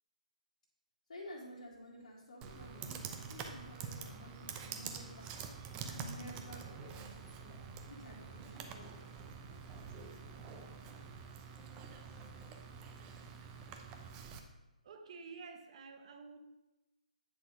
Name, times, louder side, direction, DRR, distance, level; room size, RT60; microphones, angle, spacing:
voice 1, 1.1-5.3 5.8-7.6 7.9-9.0, left 1 dB, 55° left, -5 dB, 1.9 m, -52 dB
Computer keyboard, 2.4-14.4, right 6 dB, 20° right, 0.7 m, -47 dB
voice 2, 14.8-16.4, right 4 dB, 45° right, 6 dB, 1.1 m, -50 dB
9.7 x 4.2 x 4.8 m, 1.0 s
figure-of-eight pair, 140°, 4 cm